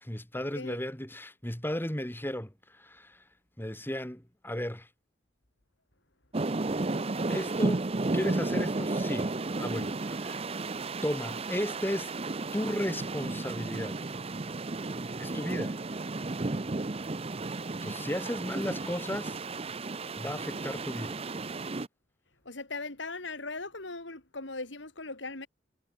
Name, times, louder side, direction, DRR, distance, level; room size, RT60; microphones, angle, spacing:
voice 1, 0.0-3.2 3.6-4.9 7.3-10.4 11.0-12.1 12.5-14.0 15.2-15.8 17.8-19.4 20.2-21.3, left 1 dB, 10° left, 1.9 m, -35 dB
sound 1, 6.3-21.9, right 2 dB, 30° right, 0.7 m, -33 dB
voice 2, 22.5-25.5, left 3 dB, 70° left, 3.7 m, -39 dB
head